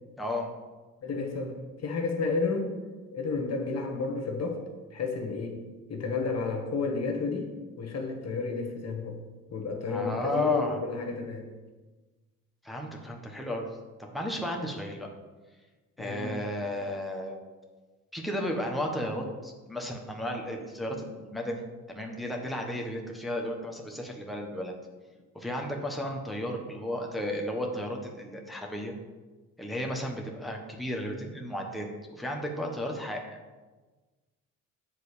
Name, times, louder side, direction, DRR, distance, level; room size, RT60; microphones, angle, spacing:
voice 1, 0.2-0.5 9.9-10.8 12.6-13.7 14.1-15.1 16.0-17.4 18.1-24.7 25.3-29.0 29.6-33.4, left 1 dB, ahead, 0 dB, 1.4 m, -33 dB
voice 2, 1.0-2.8 3.1-4.6 4.9-5.6 5.9-9.2 9.5-11.5 16.0-16.4, left 4 dB, 50° left, 3 dB, 1.5 m, -31 dB
7.8 x 4.1 x 6.8 m, 1.3 s
supercardioid pair, 75°, 34 cm